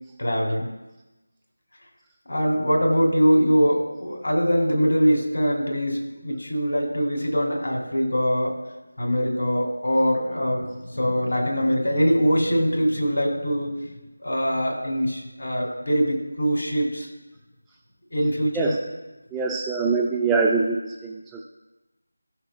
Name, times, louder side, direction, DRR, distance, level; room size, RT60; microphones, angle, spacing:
voice 1, 0.2-0.7 2.3-8.6 9.0-13.9 14.2-17.1 18.1-18.8, equal, 60° left, 0 dB, 2.6 m, -23 dB
voice 2, 19.3-21.4, right 4 dB, 5° right, -2 dB, 0.4 m, -24 dB
17.5 x 5.8 x 2.2 m, 1.1 s
figure-of-eight pair, 170°, 0 cm